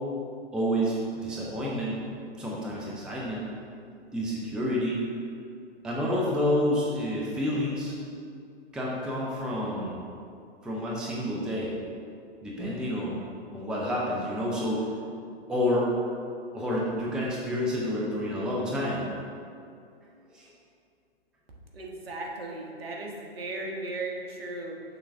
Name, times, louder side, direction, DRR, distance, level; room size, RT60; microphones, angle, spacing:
voice 1, 0.5-2.0 2.4-3.5 4.1-5.1 5.8-7.9 8.7-10.0 10.6-11.7 12.4-13.2 13.5-14.9 15.5-15.9 16.5-19.0 20.3-20.5, equal, ahead, -5 dB, 0.4 m, -29 dB
voice 2, 21.7-24.8, right 2 dB, 70° right, 0 dB, 1.3 m, -36 dB
6.5 x 3.8 x 5.5 m, 2.4 s
figure-of-eight pair, 120°, 31 cm